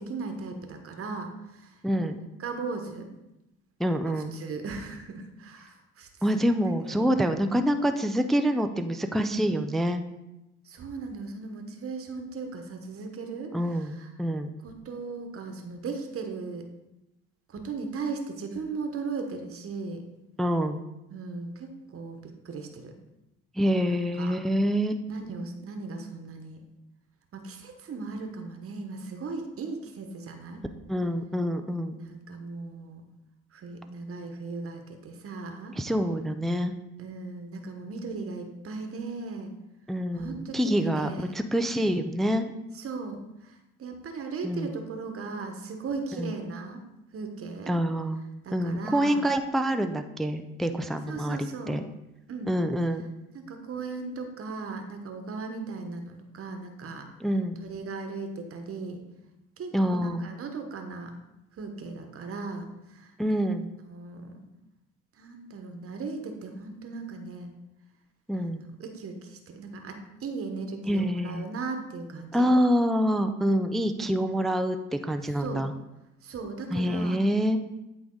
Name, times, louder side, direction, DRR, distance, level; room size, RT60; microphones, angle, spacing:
voice 1, 0.0-2.1 2.4-3.1 4.1-6.4 7.0-7.2 10.6-14.1 14.6-16.7 17.5-20.0 21.1-23.0 23.9-24.4 25.1-26.7 27.3-30.7 32.0-33.0 33.5-35.8 37.0-39.5 40.1-41.4 42.7-46.8 47.1-47.7 48.4-49.2 51.1-51.8 52.3-52.5 53.3-57.1 57.6-59.0 59.6-61.2 61.5-63.1 63.9-64.4 65.2-67.5 68.3-72.5 74.0-74.3 75.4-75.7 76.2-77.2, right 4 dB, 40° right, 5 dB, 1.2 m, -37 dB
voice 2, 1.8-2.2 3.8-4.3 6.2-10.0 13.5-14.5 20.4-20.8 23.6-25.0 30.9-32.0 35.7-36.7 39.9-41.1 41.3-42.5 44.4-44.7 46.2-46.3 47.7-48.2 48.5-51.8 52.5-53.0 57.2-57.6 59.7-60.3 63.2-63.7 68.3-68.6 70.9-71.5 72.3-75.7 76.7-77.6, equal, ahead, 7 dB, 0.4 m, -26 dB
8.5 x 3.5 x 3.8 m, 0.91 s
hypercardioid pair, 70°, 35 cm